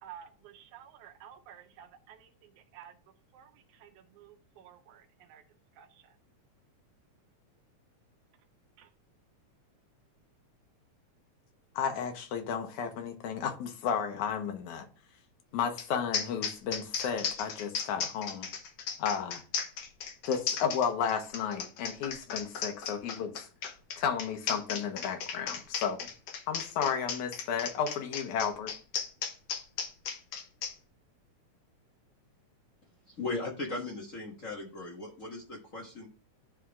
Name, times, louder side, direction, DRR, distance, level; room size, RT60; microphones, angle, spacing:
voice 1, 0.0-2.9 3.3-3.5 3.8-3.9 4.2-5.4 5.8-5.9 8.8-8.9, right 10 dB, 85° right, 2.1 m, -52 dB
voice 2, 11.8-14.9 15.5-18.5 19.0-19.4 20.3-23.5 24.0-26.1 26.5-28.7, left 7 dB, 85° left, 2.4 m, -33 dB
sound 1, 15.8-15.9 16.1-30.7, left 6 dB, 65° left, 1.8 m, -35 dB
voice 3, 33.1-36.1, left 3 dB, 50° left, 0.9 m, -38 dB
11.0 x 3.7 x 3.5 m
omnidirectional pair, 3.4 m